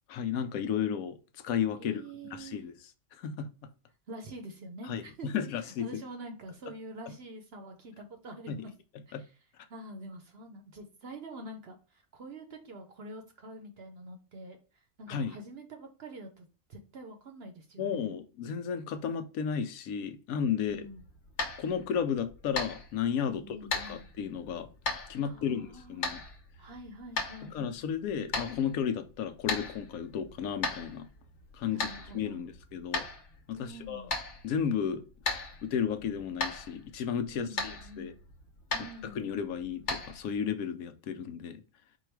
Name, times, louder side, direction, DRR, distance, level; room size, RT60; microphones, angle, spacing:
voice 1, 0.1-1.2 1.4-2.0 2.3-2.7 3.2-3.5 4.9-5.9 8.5-8.6 9.1-9.2 15.1-15.4 17.8-20.9 21.6-23.6 23.9-24.7 25.1-26.2 27.4-31.1 31.5-33.0 33.5-34.1 34.4-35.0 35.6-38.1 39.0-41.6, left 7 dB, 80° left, 1.1 m, -33 dB
voice 2, 1.8-2.6 4.1-5.5 5.8-8.7 9.1-9.3 9.7-14.6 15.0-18.2 20.6-21.0 23.2-24.0 25.2-26.1 26.6-27.6 31.7-32.4 33.5-34.1 37.3-38.1 38.7-39.2, right 1 dB, 55° right, 0.8 m, -46 dB
sound 1, 20.7-40.5, left 3 dB, 55° left, 1.2 m, -39 dB
4.7 x 2.3 x 4.5 m
omnidirectional pair, 1.5 m